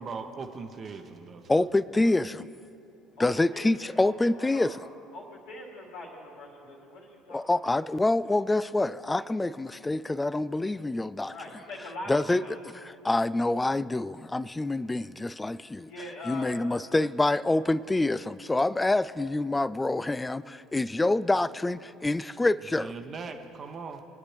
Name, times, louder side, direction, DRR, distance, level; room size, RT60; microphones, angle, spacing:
voice 1, 0.0-1.6 22.7-24.0, right 4 dB, 40° right, 0.9 m, -40 dB
voice 2, 1.5-2.5 3.2-4.8 7.3-11.3 12.1-15.9 16.3-22.9, left 2 dB, 15° left, 0.3 m, -26 dB
voice 3, 3.2-4.7 5.1-7.7 11.3-12.5 15.8-16.5, left 2 dB, 75° left, 2.6 m, -42 dB
23.0 x 9.7 x 3.3 m
hypercardioid pair, 65°, 0 cm